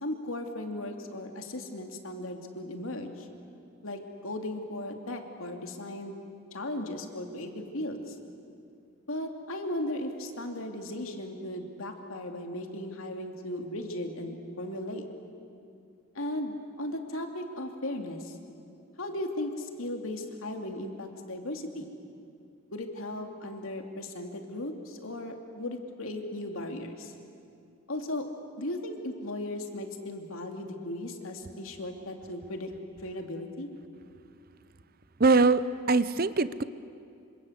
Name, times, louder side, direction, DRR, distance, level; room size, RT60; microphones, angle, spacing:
voice 1, 0.0-3.3 3.8-6.2 6.5-8.2 9.1-15.0 16.1-18.3 19.0-21.9 22.7-27.1 27.9-28.3 28.6-32.7 33.0-33.7, left 1 dB, 70° left, 4 dB, 2.8 m, -36 dB
voice 2, 35.2-36.6, right 3 dB, 45° right, 15 dB, 0.7 m, -23 dB
27.0 x 26.0 x 8.2 m, 2.4 s
head